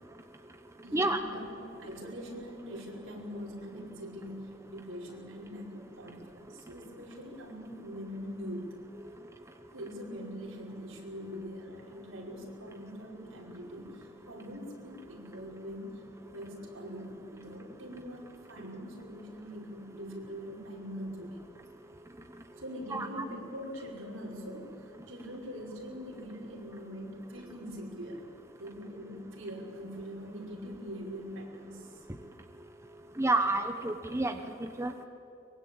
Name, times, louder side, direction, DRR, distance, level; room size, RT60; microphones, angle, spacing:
voice 1, 0.8-1.5 1.8-8.8 9.7-16.0 16.3-18.2 18.5-21.4 22.6-28.2 28.6-32.0, equal, 75° right, -2 dB, 5.7 m, -43 dB
voice 2, 33.2-34.4 34.6-35.1, right 2 dB, 15° right, 6 dB, 0.9 m, -29 dB
23.5 x 22.0 x 8.8 m, 2.9 s
head